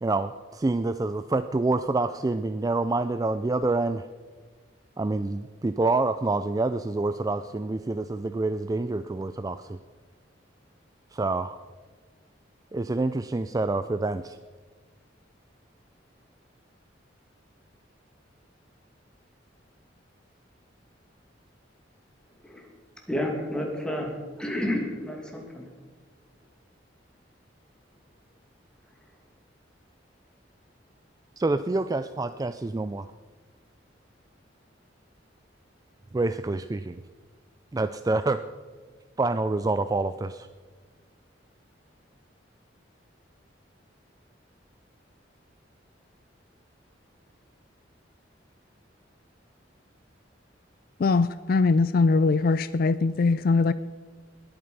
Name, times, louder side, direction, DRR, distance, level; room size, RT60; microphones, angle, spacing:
voice 1, 0.0-4.1 5.0-9.8 11.1-11.6 12.7-14.4 31.4-33.1 36.1-37.0 37.7-38.4 39.2-40.5, right 2 dB, 20° right, 11 dB, 0.3 m, -27 dB
voice 2, 22.4-22.7 23.1-25.7, left 1 dB, 5° left, 1 dB, 2.4 m, -31 dB
voice 3, 51.0-53.7, left 3 dB, 50° left, 15 dB, 0.4 m, -21 dB
20.5 x 8.8 x 5.4 m, 1.5 s
head